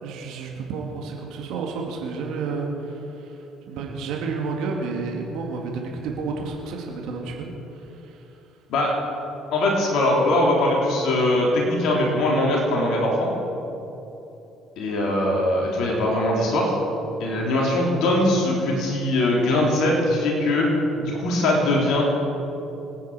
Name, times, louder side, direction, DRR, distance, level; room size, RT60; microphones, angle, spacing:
voice 1, 0.0-3.4 3.7-8.2, right 4 dB, 65° right, 0 dB, 2.1 m, -31 dB
voice 2, 9.5-13.3 14.8-16.8 17.2-20.7 21.0-22.0, left 1 dB, 60° left, -2 dB, 3.2 m, -21 dB
24.0 x 9.6 x 4.9 m, 2.9 s
hypercardioid pair, 55°, 0 cm